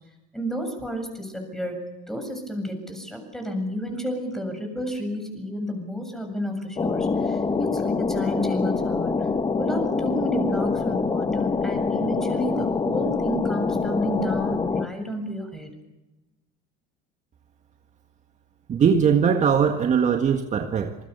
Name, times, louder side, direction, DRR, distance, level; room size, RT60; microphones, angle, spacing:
voice 1, 0.3-9.3 9.6-15.7, equal, ahead, 5 dB, 7.5 m, -31 dB
sound 1, 6.8-14.9, left 4 dB, 20° left, 1.6 m, -25 dB
voice 2, 18.7-21.0, right 7 dB, 35° right, 6 dB, 1.7 m, -20 dB
27.5 x 21.0 x 6.9 m, 1.0 s
supercardioid pair, 110°, 21 cm